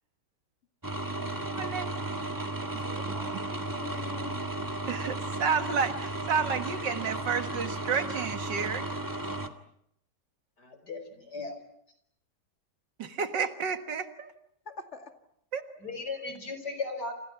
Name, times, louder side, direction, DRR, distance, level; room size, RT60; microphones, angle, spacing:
sound 1, 0.8-9.5, right 2 dB, 10° right, 1.6 m, -34 dB
voice 1, 1.4-1.9 2.7-2.9 3.3-3.4 4.9-8.9 13.0-14.3 15.5-15.6, right 6 dB, 85° right, 8 dB, 2.3 m, -31 dB
voice 2, 2.8-4.4 14.7-15.1, left 5 dB, 40° left, 5 dB, 2.6 m, -44 dB
voice 3, 10.6-11.6 15.8-17.1, left 3 dB, 65° left, 8 dB, 5.2 m, -36 dB
28.5 x 28.5 x 5.9 m, 0.72 s
omnidirectional pair, 1.9 m